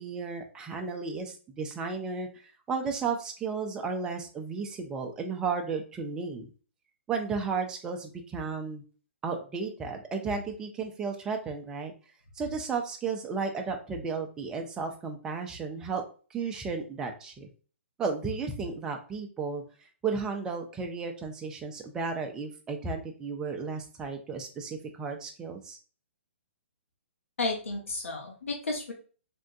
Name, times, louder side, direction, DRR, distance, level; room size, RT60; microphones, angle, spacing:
voice 1, 0.0-6.5 7.1-8.8 9.2-11.9 12.4-16.0 16.3-17.5 18.0-19.6 20.0-25.8, right 5 dB, 10° right, 3 dB, 0.4 m, -33 dB
voice 2, 27.4-28.9, left 3 dB, 85° left, 1 dB, 0.9 m, -32 dB
3.4 x 2.2 x 2.6 m, 0.38 s
hypercardioid pair, 155°, 7 cm